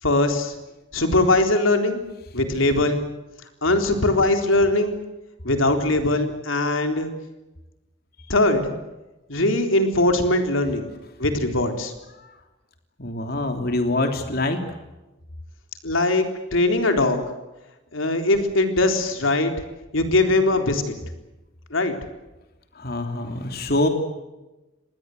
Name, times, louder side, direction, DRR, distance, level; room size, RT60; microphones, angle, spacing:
voice 1, 0.0-0.5 0.9-2.0 2.3-3.0 3.6-4.9 5.4-7.1 8.3-8.7 9.3-10.9 11.2-11.9 15.8-16.3 16.5-17.2 17.9-19.5 19.9-20.9 21.7-21.9, left 2 dB, 90° left, 6 dB, 3.9 m, -20 dB
voice 2, 13.0-14.6 22.8-23.9, left 2 dB, 50° left, 5 dB, 3.2 m, -24 dB
28.0 x 21.0 x 8.0 m, 1.0 s
head